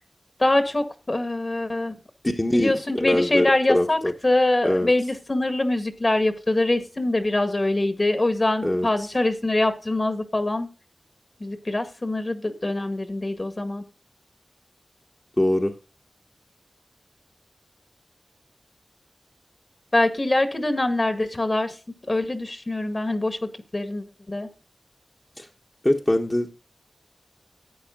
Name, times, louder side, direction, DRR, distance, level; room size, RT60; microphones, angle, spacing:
voice 1, 0.4-1.9 2.5-10.7 11.4-13.8 19.9-21.7 22.1-24.5, left 2 dB, 45° left, 8 dB, 1.8 m, -24 dB
voice 2, 2.3-4.1 4.6-4.9 8.6-8.9 15.4-15.7 25.4-25.5 25.8-26.5, left 1 dB, 25° left, 1 dB, 1.3 m, -23 dB
12.0 x 8.4 x 3.9 m, 0.32 s
cardioid pair, 45°, 0 cm